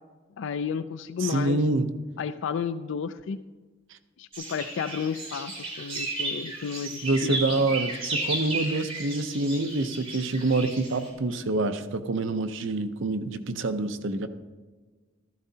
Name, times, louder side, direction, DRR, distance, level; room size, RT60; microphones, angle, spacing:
voice 1, 0.4-1.6 2.2-3.4 4.2-7.7, left 6 dB, 65° left, 12 dB, 0.4 m, -32 dB
voice 2, 1.2-1.9 7.0-14.3, right 2 dB, 65° right, 9 dB, 0.7 m, -26 dB
sound 1, 4.3-11.1, right 2 dB, 30° right, 4.3 m, -34 dB
15.0 x 12.5 x 2.8 m, 1.4 s
head